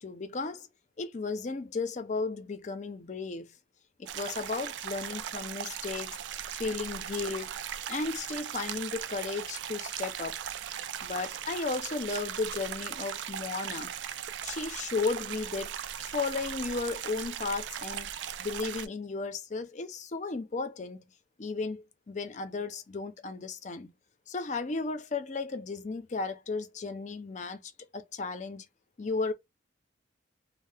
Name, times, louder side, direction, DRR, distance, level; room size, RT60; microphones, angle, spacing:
voice 1, 0.0-0.7 1.0-3.5 4.0-6.2 6.5-7.5 7.9-10.4 11.0-13.9 14.4-15.8 16.0-18.1 18.4-21.1 21.4-23.9 24.3-28.7 29.0-29.3, left 4 dB, 40° left, 0.4 m, -34 dB
sound 1, 4.0-18.9, right 9 dB, 70° right, 0.3 m, -38 dB
2.7 x 2.0 x 3.2 m
head